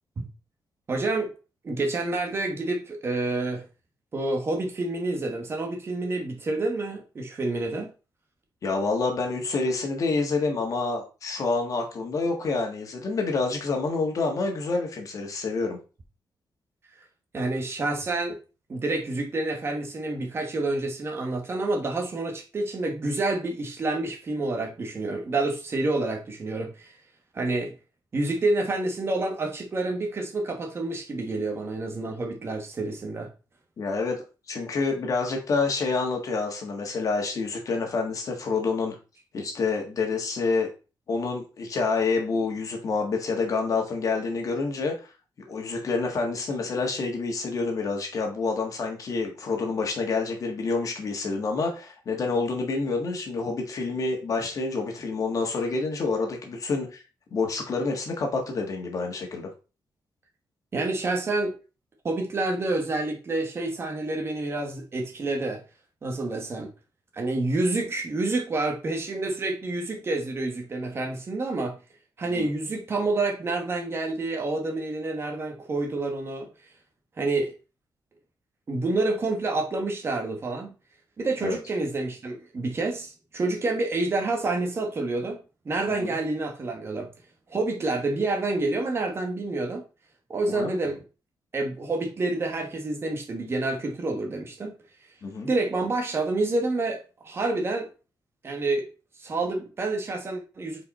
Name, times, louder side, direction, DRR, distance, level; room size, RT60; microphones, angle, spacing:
voice 1, 0.9-1.3 1.6-3.6 4.1-7.9 17.3-18.4 18.7-26.9 27.3-27.7 28.1-33.3 60.7-61.5 62.0-65.6 66.0-66.7 67.1-71.8 72.2-76.5 77.2-77.5 78.7-80.7 81.2-85.4 85.6-87.1 87.5-89.8 90.3-91.0 91.5-94.7 95.4-97.9 98.4-98.9 99.2-100.8, right 2 dB, 35° right, 1.3 m, -28 dB
voice 2, 8.6-15.8 33.8-34.2 34.5-38.9 39.3-40.7 41.1-44.9 45.5-57.0 57.3-59.5 72.2-72.5 81.4-81.6 85.9-86.1 90.5-90.8 95.2-95.5, left 4 dB, 45° left, 1.6 m, -28 dB
5.2 x 4.7 x 4.2 m
wide cardioid pair, 170°, 8 cm